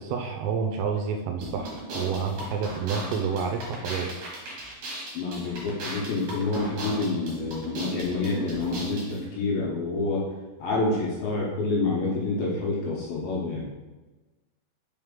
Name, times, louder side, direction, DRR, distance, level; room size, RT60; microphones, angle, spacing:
voice 1, 0.0-4.2, right 6 dB, 85° right, 4 dB, 2.5 m, -29 dB
sound 1, 1.4-9.2, right 2 dB, 60° right, 2.3 m, -36 dB
voice 2, 5.1-10.2 10.6-13.7, left 3 dB, 75° left, -4 dB, 2.3 m, -28 dB
5.6 x 4.8 x 3.6 m, 1.2 s
omnidirectional pair, 5.1 m